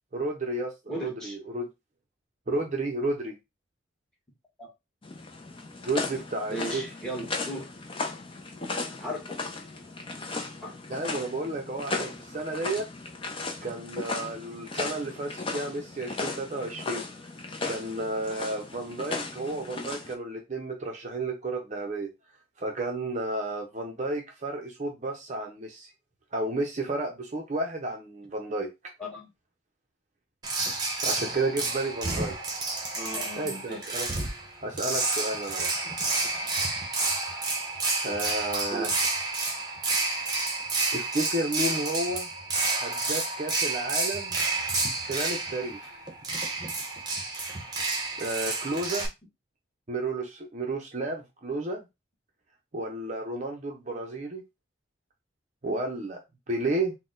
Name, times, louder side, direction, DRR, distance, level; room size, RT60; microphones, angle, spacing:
voice 1, 0.1-1.7 2.5-3.4 5.8-6.8 10.9-12.9 13.6-17.0 17.6-22.1 22.6-25.9 26.3-28.7 31.0-32.3 33.4-34.1 34.6-35.7 38.0-38.9 40.9-42.3 42.8-44.4 45.0-46.0 48.2-49.1 49.9-51.8 52.7-54.4 55.6-56.2 56.5-57.0, right 2 dB, 35° right, 0.6 m, -32 dB
voice 2, 0.9-1.4 4.6-4.7 6.5-7.7 9.0-9.2 10.6-10.8 29.0-29.3 32.9-33.9 38.7-38.9, equal, 5° left, 1.1 m, -36 dB
sound 1, 5.0-20.1, left 3 dB, 25° left, 0.6 m, -36 dB
sound 2, 30.4-49.1, right 3 dB, 20° right, 0.9 m, -30 dB
4.0 x 2.1 x 3.7 m
head